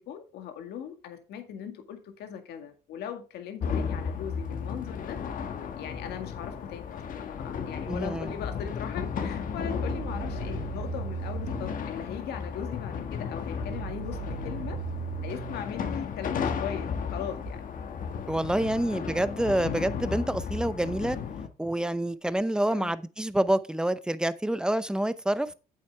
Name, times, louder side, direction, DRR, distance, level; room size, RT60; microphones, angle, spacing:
voice 1, 0.0-5.2 5.8-14.8 15.2-17.6 18.5-19.0 22.7-22.9, left 8 dB, 75° left, 2.0 m, -39 dB
sound 1, 3.6-21.5, left 6 dB, 55° left, 1.4 m, -34 dB
voice 2, 7.9-8.3 18.3-21.2 21.6-25.5, right 1 dB, 5° right, 0.6 m, -27 dB
sound 2, 9.8-11.8 13.6-15.6 17.5-17.6, right 9 dB, 85° right, 1.6 m, -37 dB
8.7 x 7.9 x 3.4 m
cardioid pair, 110°, 17 cm